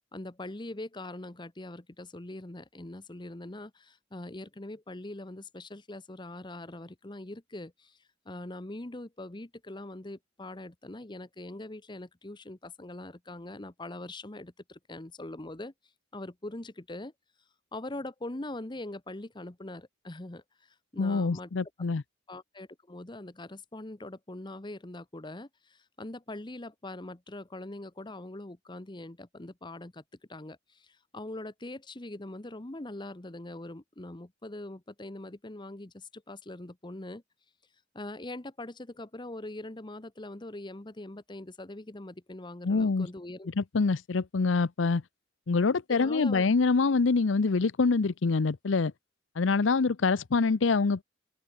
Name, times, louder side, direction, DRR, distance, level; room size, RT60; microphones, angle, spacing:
voice 1, 0.1-8.0 8.2-15.7 16.1-17.1 17.7-21.5 22.3-30.0 30.3-37.2 37.9-43.5 45.9-46.5, left 2 dB, 25° left, 1.0 m, -42 dB
voice 2, 21.0-22.0 42.6-43.1 43.6-45.0 45.5-48.9 49.4-51.0, left 4 dB, 75° left, 0.6 m, -25 dB
head